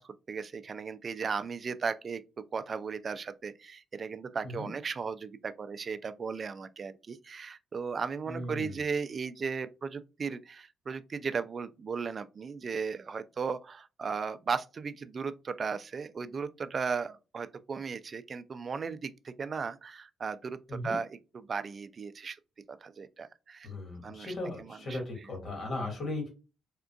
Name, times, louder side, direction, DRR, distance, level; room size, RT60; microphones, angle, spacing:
voice 1, 0.0-2.2 2.5-22.4 22.7-23.7 24.0-25.3, right 5 dB, 40° right, 0.3 m, -36 dB
voice 2, 8.3-8.8 20.7-21.0 23.6-26.3, left 2 dB, 50° left, 1.7 m, -37 dB
3.6 x 2.4 x 2.3 m
cardioid pair, 90°, 0 cm